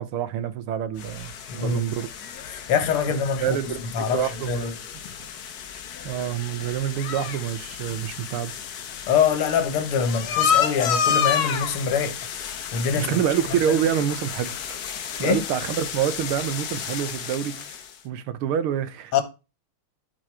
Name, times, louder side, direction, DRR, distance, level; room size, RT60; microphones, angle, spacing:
voice 1, 0.0-2.1 3.4-4.8 6.0-8.5 12.9-14.9 15.2-19.1, right 9 dB, 85° right, 1.7 m, -27 dB
sound 1, 1.0-18.0, left 8 dB, 55° left, 1.2 m, -30 dB
voice 2, 1.5-1.8 2.5-3.6 3.9-4.7 9.1-12.2 12.7-13.2 13.7-13.8 15.2-15.4 19.1-19.2, left 7 dB, 85° left, 2.0 m, -24 dB
12.0 x 4.8 x 4.5 m
omnidirectional pair, 2.4 m